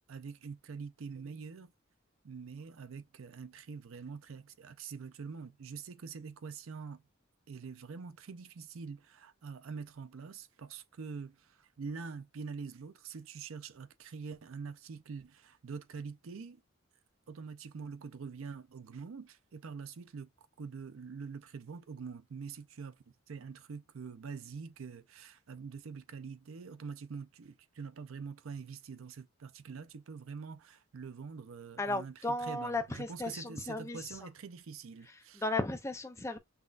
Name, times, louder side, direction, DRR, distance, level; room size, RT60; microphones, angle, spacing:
voice 1, 0.1-1.7 2.2-7.0 7.5-16.6 17.3-20.3 20.6-35.4, right 5 dB, 75° right, 0.5 m, -45 dB
voice 2, 31.8-34.2 35.3-36.4, left 2 dB, 15° left, 0.5 m, -35 dB
5.8 x 2.3 x 2.4 m
head